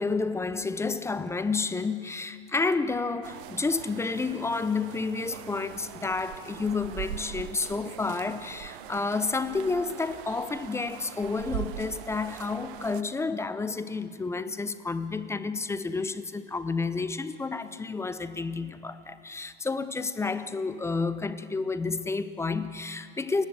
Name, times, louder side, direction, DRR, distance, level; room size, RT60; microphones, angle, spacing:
voice 1, 0.0-23.4, left 4 dB, 10° left, 0.7 m, -30 dB
sound 1, 3.2-13.0, right 13 dB, 50° right, 0.9 m, -42 dB
28.5 x 10.5 x 9.0 m
hypercardioid pair, 110°, 32 cm